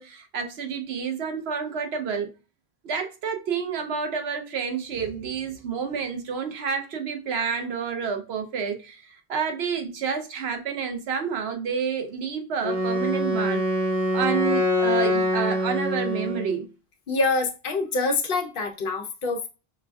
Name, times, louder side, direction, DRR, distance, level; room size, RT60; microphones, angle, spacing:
voice 1, 0.0-2.3 2.8-13.6 14.1-16.7, right 6 dB, 85° right, 1.0 m, -29 dB
Wind instrument woodwind instrument, 12.6-16.6, left 1 dB, 35° right, 1.3 m, -24 dB
voice 2, 17.1-19.5, left 3 dB, 60° left, 0.9 m, -25 dB
5.3 x 2.5 x 2.3 m
omnidirectional pair, 1.0 m